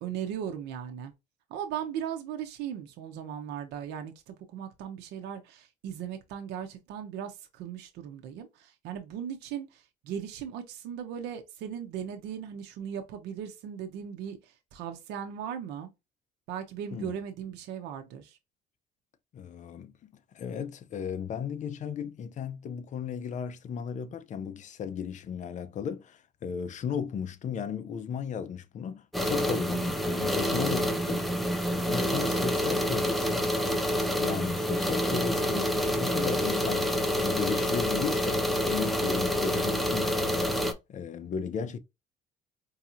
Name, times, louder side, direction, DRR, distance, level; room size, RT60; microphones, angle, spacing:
voice 1, 0.0-1.1 1.5-15.9 16.5-18.4, right 9 dB, 90° right, 0.7 m, -38 dB
voice 2, 19.3-19.9 20.3-31.3 31.6-33.5 34.2-36.9 37.2-40.5 40.9-41.8, left 7 dB, 45° left, 0.6 m, -35 dB
sound 1, 29.1-40.7, equal, ahead, 0.7 m, -27 dB
4.7 x 2.8 x 2.5 m
cardioid pair, 110°, 17 cm